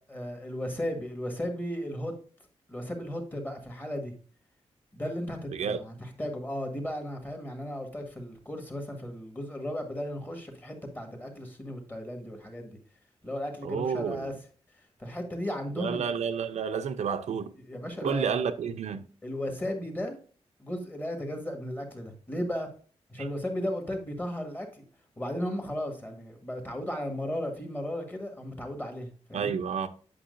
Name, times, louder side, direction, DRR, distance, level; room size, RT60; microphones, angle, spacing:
voice 1, 0.0-2.1 2.7-4.2 4.9-12.8 13.2-14.3 15.0-16.1 17.6-18.5 19.2-20.2 20.6-22.7 23.1-24.8 25.2-29.6, left 1 dB, 15° left, 1.6 m, -35 dB
voice 2, 13.6-14.3 15.8-17.5 18.0-19.1 23.2-23.3 29.3-29.9, right 6 dB, 85° right, 0.7 m, -30 dB
8.6 x 6.0 x 2.6 m
wide cardioid pair, 150°, 11 cm